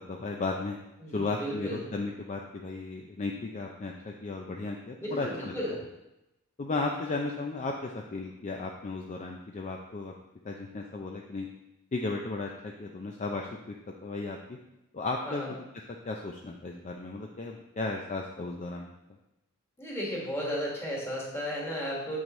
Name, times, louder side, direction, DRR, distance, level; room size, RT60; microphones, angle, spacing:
voice 1, 0.1-0.8 1.1-5.5 6.6-10.1 10.4-11.5 11.9-13.8 14.0-14.6 14.9-15.6 16.0-18.9, left 3 dB, 35° left, 1 dB, 0.4 m, -35 dB
voice 2, 1.0-1.8 5.0-5.8 15.2-15.5 19.8-22.2, equal, 10° left, -4 dB, 1.6 m, -34 dB
6.9 x 6.2 x 3.1 m, 0.93 s
head